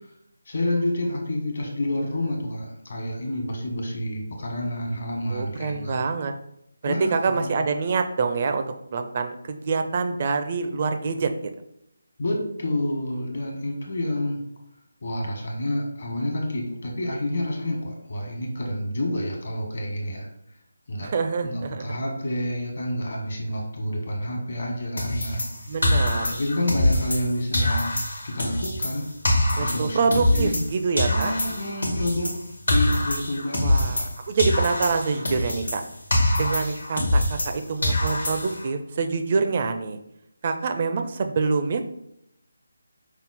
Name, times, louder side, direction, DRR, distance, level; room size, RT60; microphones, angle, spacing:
voice 1, 0.4-6.1 6.8-7.6 12.2-14.4 15.0-20.3 20.9-21.1 21.4-25.4 26.1-28.0 28.2-29.1 29.6-30.6 31.1-32.3 32.7-34.1, left 1 dB, 55° left, 0 dB, 1.2 m, -29 dB
voice 2, 5.3-6.3 6.8-8.6 8.9-11.3 21.0-21.9 25.7-26.3 29.5-31.3 33.6-35.8 36.4-40.0 40.4-41.8, right 4 dB, 35° right, 7 dB, 0.4 m, -26 dB
sound 1, 25.0-27.3 27.5-30.7 31.0-34.1 34.4-37.5 37.8-38.7, left 1 dB, 75° left, 1.3 m, -24 dB
5.4 x 2.0 x 3.9 m, 0.79 s
figure-of-eight pair, 155°, 0 cm